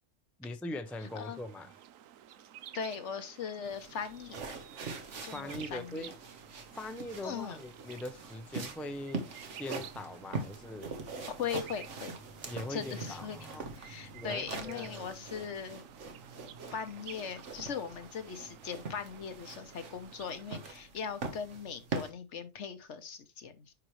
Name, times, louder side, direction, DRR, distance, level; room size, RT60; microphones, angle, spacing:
voice 1, 0.4-1.7 5.3-6.1 6.7-9.3 9.6-10.9 12.5-13.7 14.1-15.1, left 1 dB, ahead, 0.5 m, -41 dB
sound 1, 0.8-20.6, right 11 dB, 85° right, 1.0 m, -53 dB
voice 2, 2.7-4.4 5.2-6.1 7.2-7.6 11.4-12.1 12.7-13.4 13.8-15.8 16.7-23.7, left 6 dB, 65° left, 1.3 m, -39 dB
sound 2, 3.7-22.1, right 3 dB, 65° right, 1.5 m, -43 dB
9.9 x 4.5 x 3.2 m
omnidirectional pair, 1.3 m